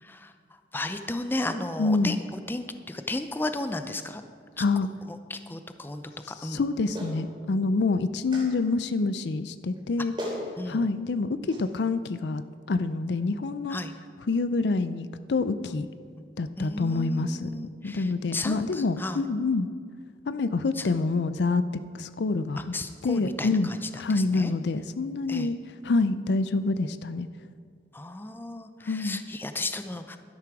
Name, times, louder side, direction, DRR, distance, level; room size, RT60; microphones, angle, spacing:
voice 1, 0.0-0.3 0.7-4.2 4.6-4.7 5.1-6.6 10.6-10.8 13.7-13.9 15.7-15.8 16.6-19.2 20.8-20.9 22.6-24.5 25.3-25.5 27.9-30.2, left 2 dB, 10° left, 8 dB, 0.5 m, -34 dB
voice 2, 1.8-2.2 4.6-4.9 6.4-10.1 10.7-12.4 12.7-13.8 14.3-15.9 16.4-17.5 17.8-19.7 20.3-21.6 21.9-22.7 23.0-25.6 25.8-27.3 28.9-29.2, left 3 dB, 70° left, 13 dB, 0.4 m, -27 dB
Clapping, 6.9-7.2 8.3-8.5 9.8-9.9 10.2-10.4 11.5-11.6, equal, 25° right, 2.8 m, -35 dB
12.0 x 10.5 x 4.7 m, 2.1 s
head